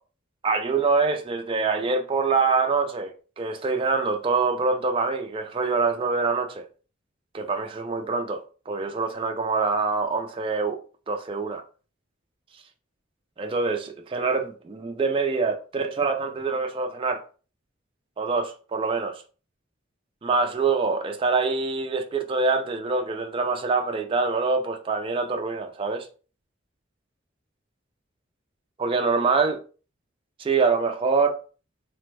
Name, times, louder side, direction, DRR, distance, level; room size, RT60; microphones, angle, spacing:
voice 1, 0.4-6.6 7.3-10.8 11.1-11.6 13.4-17.2 18.2-19.2 20.2-26.1 28.8-29.6 30.4-31.4, right 4 dB, 25° right, 0.3 m, -25 dB
3.3 x 2.0 x 3.2 m
head